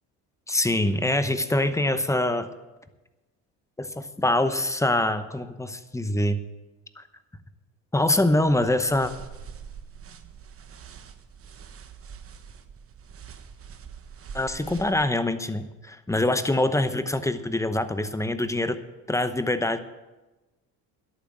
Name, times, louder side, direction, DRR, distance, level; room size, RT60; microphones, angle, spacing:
voice 1, 0.5-2.5 3.8-6.4 7.0-7.1 7.9-9.1 14.3-18.8 19.1-19.8, left 1 dB, 10° left, 11 dB, 0.9 m, -24 dB
sound 1, 8.1-15.1, right 7 dB, 35° right, 1.1 m, -44 dB
11.5 x 8.8 x 7.7 m, 1.1 s
supercardioid pair, 100°, 39 cm